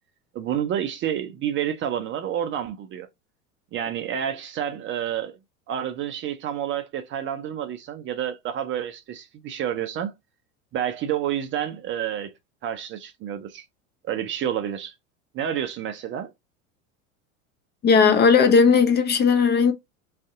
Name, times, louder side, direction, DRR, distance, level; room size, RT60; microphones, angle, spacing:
voice 1, 0.3-3.1 3.7-5.4 5.7-10.1 10.7-12.3 12.6-13.6 14.1-14.9 15.3-16.3, right 10 dB, 30° right, 0.4 m, -29 dB
voice 2, 17.8-19.7, left 5 dB, 25° left, 0.5 m, -17 dB
2.5 x 2.4 x 3.5 m
hypercardioid pair, 85°, 43 cm